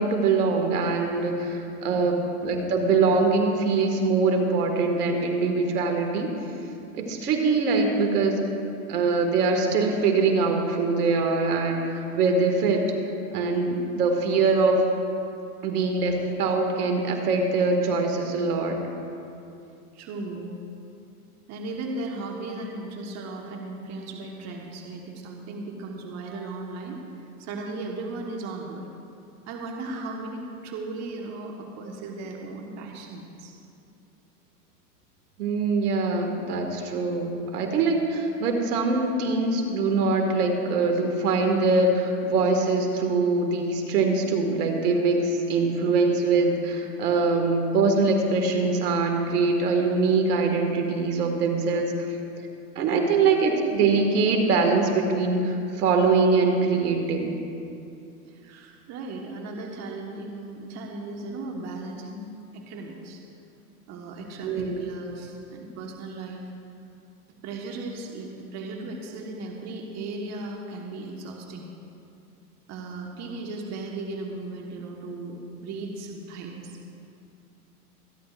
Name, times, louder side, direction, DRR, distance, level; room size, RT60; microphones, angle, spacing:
voice 1, 0.0-6.3 6.9-8.4 8.9-12.9 13.3-14.8 15.6-18.8 35.4-51.9 52.8-57.3 64.4-64.8, right 3 dB, 75° right, 3 dB, 2.0 m, -23 dB
voice 2, 1.9-2.2 19.9-20.6 21.5-28.9 29.5-33.5 52.9-53.4 58.2-63.2 63.9-66.4 67.4-71.7 72.7-76.8, right 2 dB, 35° right, 1 dB, 1.3 m, -36 dB
26.0 x 10.5 x 2.5 m, 2.6 s
hypercardioid pair, 120°, 46 cm